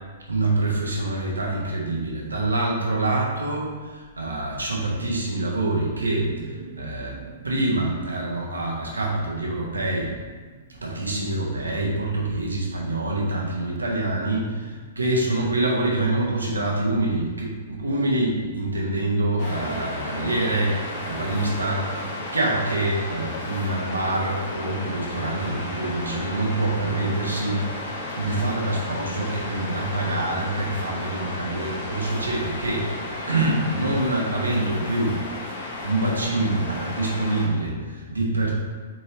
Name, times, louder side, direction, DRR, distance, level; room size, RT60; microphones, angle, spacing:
voice 1, 0.3-7.2 7.4-10.1 10.7-27.6 28.1-32.9 33.3-35.2 35.8-38.5, right 2 dB, 80° right, -3 dB, 1.5 m, -26 dB
sound 1, 6.0-12.8 13.8-15.6, right 6 dB, 40° right, 0.5 m, -45 dB
Waves surf, 19.4-37.5, left 1 dB, 55° left, 1.6 m, -33 dB
7.4 x 4.4 x 3.1 m, 1.5 s
figure-of-eight pair, 110°, 0 cm